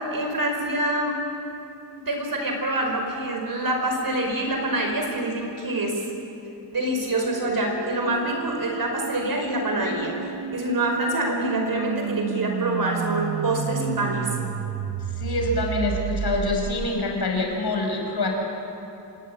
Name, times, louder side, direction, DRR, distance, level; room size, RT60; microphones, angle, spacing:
voice 1, 0.1-1.2 2.0-6.0 6.7-10.1 10.5-14.3, right 1 dB, 55° right, 2 dB, 5.1 m, -26 dB
sound 1, 7.1-17.2, right 8 dB, 80° right, 0.8 m, -32 dB
voice 2, 15.2-18.3, left 2 dB, 60° left, 1 dB, 5.5 m, -25 dB
27.0 x 19.0 x 8.7 m, 2.9 s
wide cardioid pair, 145°, 43 cm